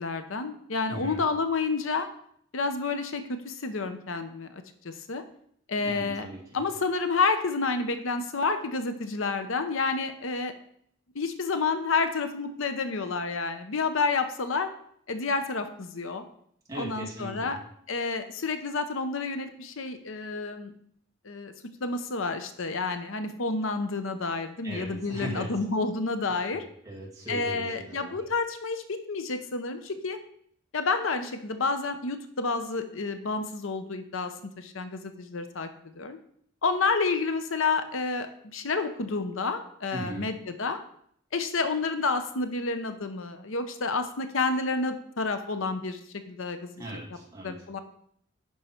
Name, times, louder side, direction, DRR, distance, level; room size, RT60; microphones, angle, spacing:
voice 1, 0.0-2.1 2.5-5.2 5.7-6.3 6.5-10.5 11.1-14.7 15.1-16.2 16.8-17.6 17.9-20.7 21.2-21.5 21.8-26.6 27.3-30.2 30.7-35.7 36.0-36.2 36.6-38.3 38.5-40.8 41.3-46.0 46.3-46.7 47.4-47.8, left 4 dB, 75° left, 9 dB, 0.8 m, -29 dB
voice 2, 0.9-1.2 5.8-6.6 16.7-17.6 24.6-25.5 26.2-28.2 39.9-40.3 46.8-47.6, right 1 dB, 15° right, -3 dB, 2.2 m, -39 dB
10.5 x 5.5 x 4.4 m, 0.66 s
head